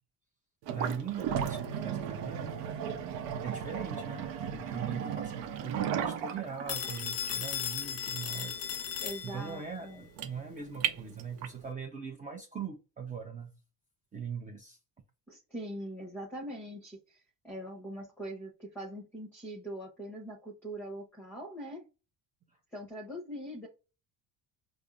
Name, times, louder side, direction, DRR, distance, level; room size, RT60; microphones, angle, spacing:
sound 1, 0.6-11.6, right 8 dB, 80° right, 0.7 m, -36 dB
voice 1, 0.7-2.7 3.4-4.3 4.5-9.0 9.2-13.5 14.1-14.8, right 6 dB, 20° right, 0.5 m, -41 dB
Telephone, 6.7-9.7, left 9 dB, 40° left, 0.4 m, -36 dB
voice 2, 9.0-10.1 15.3-21.8 22.7-23.7, right 1 dB, 5° left, 0.9 m, -42 dB
5.1 x 2.0 x 2.4 m
cardioid pair, 135°, 40 cm